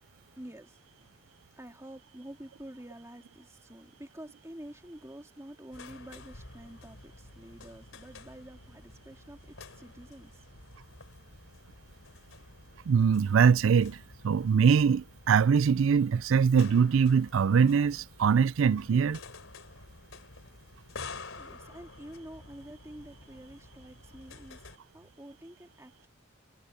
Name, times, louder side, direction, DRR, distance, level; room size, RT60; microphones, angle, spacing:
voice 1, 0.3-1.1 1.6-10.5 21.4-26.1, right 1 dB, 15° right, 2.3 m, -48 dB
sound 1, 5.7-24.8, left 3 dB, 80° left, 3.4 m, -50 dB
voice 2, 12.9-14.0 14.2-19.2, right 6 dB, 75° right, 0.4 m, -23 dB
head